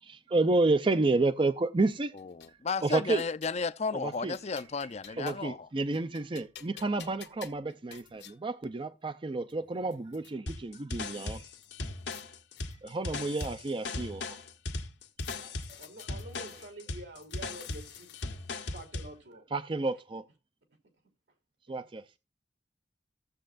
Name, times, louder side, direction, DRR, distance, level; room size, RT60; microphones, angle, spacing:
voice 1, 0.0-2.1 2.8-3.2 3.9-4.4 5.2-11.5 12.8-14.4 15.4-15.8 19.5-20.2 21.7-22.2, right 2 dB, 30° right, 0.5 m, -30 dB
sound 1, 1.9-3.6 4.1-5.6 5.9-8.4 9.1-9.2 9.5-10.3 11.6-12.3 12.6-13.8 15.2-16.7 17.2-18.5, left 9 dB, 70° left, 1.2 m, -53 dB
voice 2, 2.1-5.7, left 4 dB, 40° left, 0.5 m, -33 dB
sound 2, 10.5-19.1, left 2 dB, 90° left, 1.6 m, -38 dB
voice 3, 15.8-18.1 18.7-19.4, right 1 dB, 80° right, 3.1 m, -47 dB
15.5 x 7.5 x 2.5 m
head